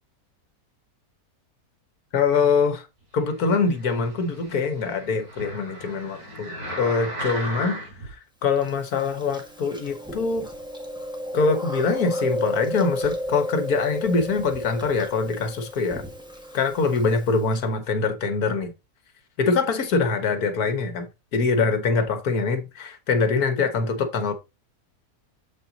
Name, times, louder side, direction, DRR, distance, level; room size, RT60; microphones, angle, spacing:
voice 1, 2.1-2.9 3.1-10.5 11.3-16.0 16.5-18.7 19.4-21.1 21.3-24.3, left 4 dB, 75° left, 1.7 m, -24 dB
sound 1, 3.5-8.1 8.7-8.8, equal, 75° right, 4.1 m, -36 dB
Chewing mastication, 8.6-17.6, equal, 5° right, 1.4 m, -33 dB
7.5 x 4.4 x 4.0 m
omnidirectional pair, 1.6 m